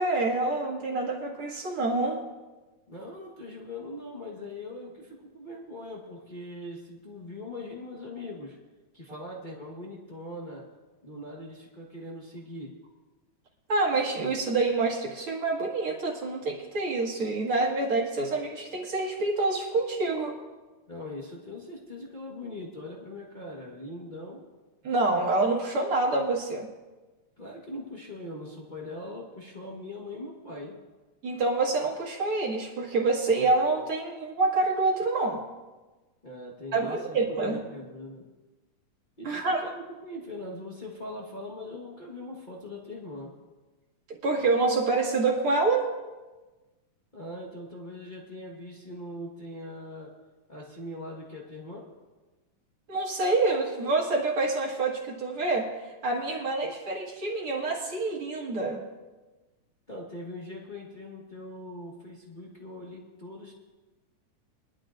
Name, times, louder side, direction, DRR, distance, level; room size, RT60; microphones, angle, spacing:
voice 1, 0.0-2.2 13.7-20.4 24.8-26.7 31.2-35.4 36.7-37.6 39.2-39.6 44.1-46.0 52.9-58.8, right 3 dB, 50° right, -2 dB, 2.5 m, -27 dB
voice 2, 2.9-8.6 8.9-10.7 11.0-12.8 20.9-24.5 27.4-30.8 36.2-38.3 39.2-43.3 47.1-50.2 50.5-51.9 59.9-63.5, left 1 dB, 60° left, -3 dB, 0.4 m, -41 dB
22.5 x 12.0 x 2.6 m, 1.2 s
omnidirectional pair, 3.5 m